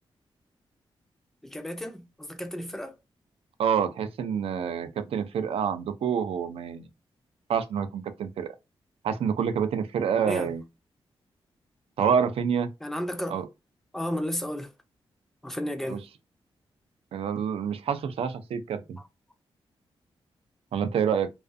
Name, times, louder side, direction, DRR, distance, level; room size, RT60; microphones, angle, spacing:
voice 1, 1.5-2.9 10.2-10.5 12.8-13.4 13.9-14.7 15.4-16.0, equal, 5° left, 0.3 m, -32 dB
voice 2, 3.6-6.9 7.5-8.5 9.0-10.6 12.0-12.7 13.3-13.5 15.8-16.0 17.1-19.0 20.7-21.3, right 7 dB, 80° right, 0.4 m, -27 dB
2.4 x 2.3 x 2.5 m
wide cardioid pair, 150°, 10 cm